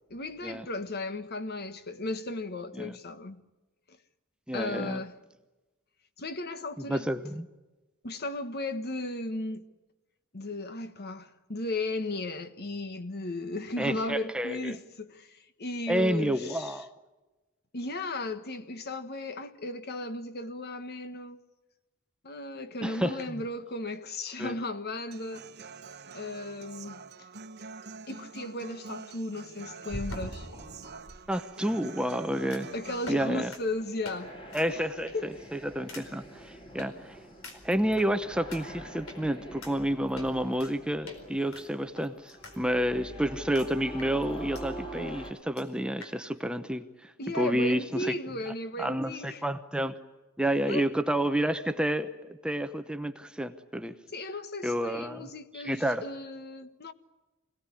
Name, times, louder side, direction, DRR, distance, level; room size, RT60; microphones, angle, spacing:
voice 1, 0.1-3.4 4.5-5.1 6.2-7.1 8.0-9.7 10.3-16.8 17.7-21.4 22.2-25.4 26.1-27.0 28.1-30.5 32.7-34.4 34.7-34.8 35.1-35.3 47.2-49.4 50.7-50.9 54.1-56.9, left 2 dB, 50° left, 1.4 m, -35 dB
voice 2, 4.5-5.0 6.9-7.5 13.8-14.8 15.9-16.9 22.8-23.2 24.4-24.6 31.3-32.7 33.1-33.5 34.5-37.2 37.6-48.1 48.8-50.0 50.4-52.1 52.4-53.9 54.6-56.1, right 1 dB, 5° right, 0.8 m, -30 dB
Human voice / Acoustic guitar, 25.1-33.1, right 4 dB, 55° right, 1.2 m, -46 dB
sound 1, 29.9-31.2 32.5-32.7 33.0-33.2 33.5-33.6 34.0-34.2 34.5-34.7 35.1-35.3 35.9-36.0 36.8-36.9 37.4-38.1 38.5-38.6 39.1-39.2 39.6-39.7 40.2-40.7 41.1-41.2 41.5-42.6 42.8-42.9 43.5-43.7 44.0-44.6 45.0-45.1 45.3-45.4 45.6-45.7 46.0-46.1, left 1 dB, 75° left, 4.5 m, -42 dB
sound 2, 32.2-45.3, right 1 dB, 25° left, 3.2 m, -45 dB
25.5 x 17.5 x 9.8 m
head